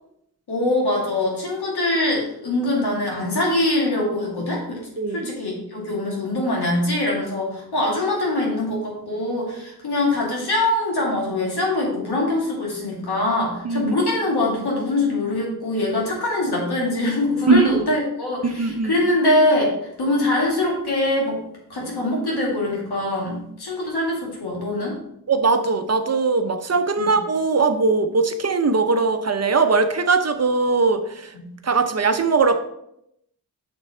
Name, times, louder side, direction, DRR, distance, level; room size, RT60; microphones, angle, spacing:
voice 1, 0.5-4.8 5.1-19.7 20.0-21.4 21.7-25.0 27.0-27.1 31.3-31.5, left 1 dB, 80° left, -2 dB, 2.3 m, -23 dB
voice 2, 5.0-5.3 13.6-13.9 17.5-17.8 18.4-19.0 25.3-31.3 31.6-32.6, right 4 dB, 40° right, 8 dB, 0.8 m, -20 dB
6.1 x 4.1 x 5.4 m, 0.78 s
cardioid pair, 45°, 38 cm